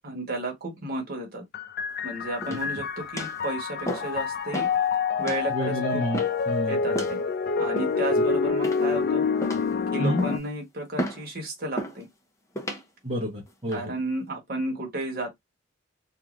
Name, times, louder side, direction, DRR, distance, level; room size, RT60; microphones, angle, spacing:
voice 1, 0.0-1.4 2.0-4.7 5.2-6.0 6.7-7.2 7.6-9.2 9.9-12.1 13.7-15.4, right 1 dB, 50° right, 1.3 m, -33 dB
sound 1, 1.5-10.4, left 5 dB, 50° left, 0.4 m, -27 dB
walking up wood stairs in shoes, 2.4-2.8 3.2-3.4 3.9-4.2 4.5-4.8 5.3-5.5 6.1-6.5 6.9-7.2 7.8-8.2 8.6-9.0 9.4-9.8 10.2-10.5 11.0-11.3 11.8-12.0 12.6-12.8 13.5-13.8, equal, 15° left, 0.6 m, -33 dB
voice 2, 5.5-7.0 10.0-10.2 13.0-13.9, equal, 30° right, 0.9 m, -29 dB
3.0 x 2.5 x 2.5 m
head